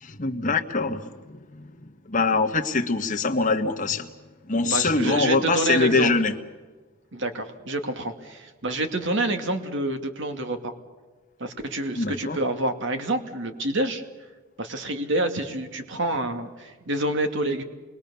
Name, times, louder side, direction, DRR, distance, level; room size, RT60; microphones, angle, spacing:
voice 1, 0.0-4.1 4.5-6.3 11.9-12.4, left 3 dB, 40° left, 5 dB, 1.5 m, -24 dB
voice 2, 4.6-6.1 7.1-10.7 11.4-14.0 14.6-17.6, right 1 dB, 65° right, 6 dB, 2.4 m, -27 dB
28.0 x 22.0 x 7.1 m, 1.3 s
head